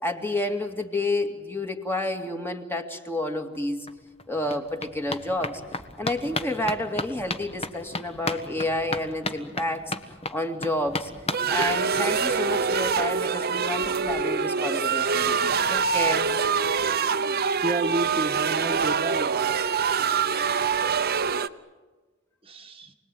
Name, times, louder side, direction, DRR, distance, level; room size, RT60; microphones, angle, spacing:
voice 1, 0.0-3.9 4.3-5.6 6.0-9.9 10.3-11.1 11.5-16.3, left 1 dB, 10° left, 4 dB, 2.2 m, -30 dB
sound 1, 3.5-3.6 3.9-12.3 12.7-12.8 13.0-13.1 13.4-13.5, left 2 dB, 30° left, 1.5 m, -35 dB
sound 2, 11.3-21.5, right 6 dB, 50° right, 0.9 m, -25 dB
voice 2, 17.6-19.3 22.4-22.9, right 1 dB, 30° right, 4 dB, 1.5 m, -30 dB
29.0 x 20.5 x 9.2 m, 1.3 s
head